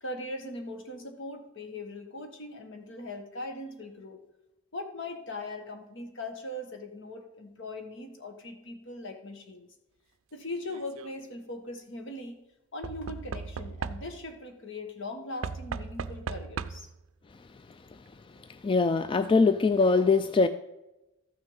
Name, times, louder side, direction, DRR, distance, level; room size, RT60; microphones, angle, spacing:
voice 1, 0.0-4.2 4.7-9.7 10.3-12.4 12.7-16.9, left 2 dB, 65° left, 5 dB, 1.4 m, -40 dB
Knock / Wood, 10.6-11.1 12.8-14.4 15.4-17.0 18.1-18.2 18.4-18.5, right 5 dB, 85° right, 0.4 m, -37 dB
voice 2, 18.5-20.5, left 4 dB, 25° left, 11 dB, 0.3 m, -22 dB
13.5 x 6.3 x 5.6 m, 0.98 s
head